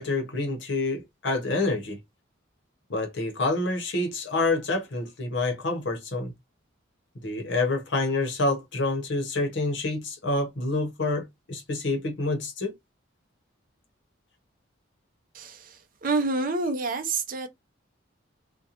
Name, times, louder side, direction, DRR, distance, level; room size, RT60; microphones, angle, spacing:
voice 1, 0.0-2.0 2.9-6.3 7.2-12.7, left 2 dB, 60° left, 0.8 m, -27 dB
voice 2, 15.3-17.5, right 3 dB, 45° right, 0.6 m, -28 dB
2.4 x 2.1 x 2.8 m
head